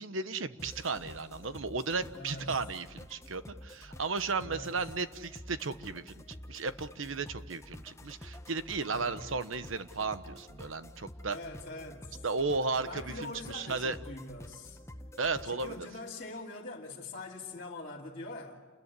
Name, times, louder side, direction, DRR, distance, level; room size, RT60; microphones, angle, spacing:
voice 1, 0.0-11.4 12.2-14.0 15.2-15.9, right 4 dB, 80° right, 1.1 m, -35 dB
sound 1, 0.6-15.8, left 1 dB, 15° left, 0.9 m, -49 dB
voice 2, 2.1-2.5 4.4-4.8 8.8-9.2 11.2-12.2 12.8-14.8 15.4-18.6, left 2 dB, 40° left, 2.8 m, -43 dB
28.5 x 21.5 x 8.3 m
head